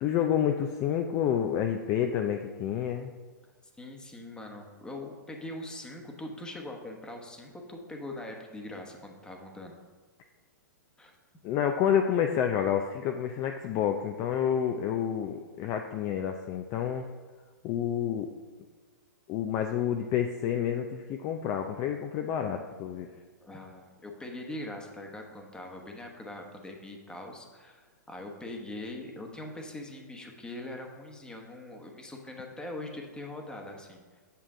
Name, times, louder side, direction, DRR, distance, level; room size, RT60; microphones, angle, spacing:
voice 1, 0.0-3.1 11.4-17.1 17.6-18.3 19.3-23.1, left 9 dB, 30° left, 5 dB, 0.5 m, -29 dB
voice 2, 3.8-9.8 11.0-11.1 23.4-34.0, left 1 dB, 10° left, 2 dB, 1.0 m, -42 dB
8.3 x 6.3 x 3.7 m, 1.5 s
hypercardioid pair, 130°, 10 cm